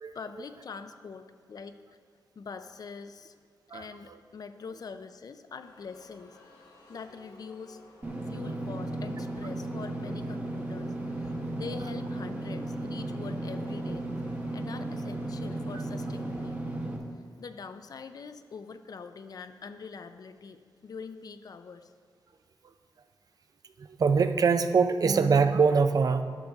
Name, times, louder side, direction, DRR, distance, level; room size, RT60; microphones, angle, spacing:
voice 1, 0.1-1.8 2.4-3.3 3.7-7.8 8.3-14.1 14.5-16.8 17.4-21.9, left 5 dB, 55° left, 10 dB, 0.4 m, -44 dB
voice 2, 3.7-4.2 23.8-26.2, right 5 dB, 55° right, 10 dB, 0.4 m, -24 dB
sound 1, 5.6-16.5, left 2 dB, 75° left, 2.0 m, -56 dB
Engine / Mechanisms, 8.0-17.0, right 1 dB, 20° right, 1.0 m, -35 dB
11.5 x 6.6 x 3.5 m, 2.2 s
wide cardioid pair, 115°, 8 cm